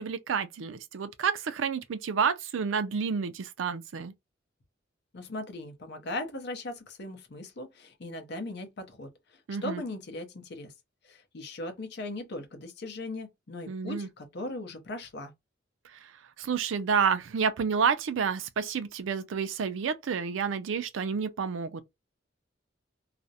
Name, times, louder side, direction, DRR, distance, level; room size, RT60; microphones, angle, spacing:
voice 1, 0.0-4.1 9.5-9.8 13.7-14.1 15.9-16.1 16.4-21.8, right 6 dB, 85° right, 0.4 m, -29 dB
voice 2, 5.1-10.7 11.0-15.3, left 2 dB, 60° left, 0.7 m, -39 dB
2.4 x 2.0 x 2.7 m
head